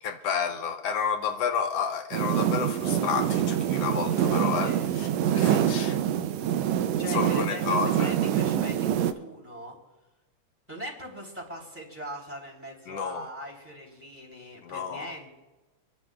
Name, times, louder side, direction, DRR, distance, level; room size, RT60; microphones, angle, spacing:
voice 1, 0.0-4.7 5.0-5.9 7.1-8.1 12.9-13.3 14.6-15.1, left 6 dB, 70° left, 1.6 m, -30 dB
sound 1, 2.1-9.1, right 10 dB, 75° right, 1.7 m, -25 dB
voice 2, 4.5-4.9 5.5-5.9 7.0-9.7 10.7-15.3, equal, 5° right, 3.2 m, -41 dB
27.5 x 11.5 x 2.5 m
omnidirectional pair, 3.5 m